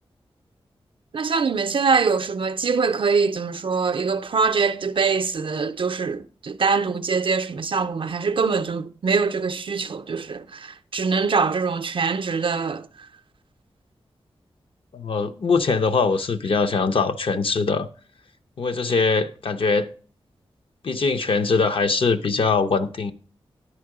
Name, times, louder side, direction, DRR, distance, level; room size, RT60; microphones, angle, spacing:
voice 1, 1.1-12.9, right 5 dB, 55° right, 0.5 m, -23 dB
voice 2, 14.9-17.9 18.6-19.9 20.8-23.1, left 4 dB, 65° left, 0.6 m, -22 dB
9.9 x 4.5 x 4.8 m
wide cardioid pair, 80°, 10 cm